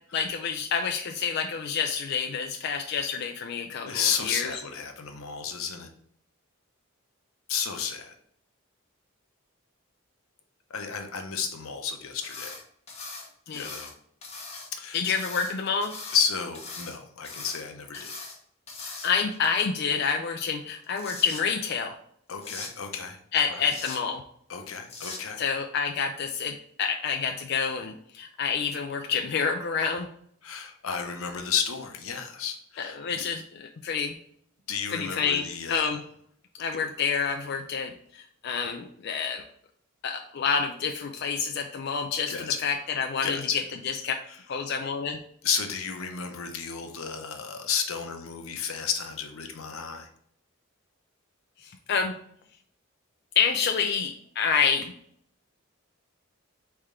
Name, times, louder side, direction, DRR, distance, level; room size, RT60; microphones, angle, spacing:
voice 1, 0.1-4.5 13.5-13.7 14.9-15.9 17.9-18.0 19.0-21.9 23.3-24.2 25.4-30.1 32.8-34.2 34.9-36.0 36.6-39.4 40.0-43.5 43.8-44.1 44.5-45.2 51.6-52.1 53.4-54.9, left 6 dB, 55° left, 4 dB, 0.4 m, -28 dB
voice 2, 3.8-5.9 7.5-8.1 10.7-12.6 13.5-13.9 14.7-15.1 16.1-18.1 22.3-23.2 23.5-23.6 24.5-25.4 30.4-33.0 34.7-35.9 42.3-42.6 43.2-43.6 45.4-50.1, left 7 dB, 85° left, 5 dB, 0.7 m, -32 dB
sound 1, 12.2-12.6 12.9-13.9 14.2-14.7 15.1-16.2 16.5-16.9 17.2-17.6 17.9-18.4 18.7-19.3 20.7-21.4 22.4-22.7 23.6-24.0 24.8-25.2, left 3 dB, 30° left, 1.0 m, -40 dB
4.3 x 3.4 x 3.6 m, 0.63 s
head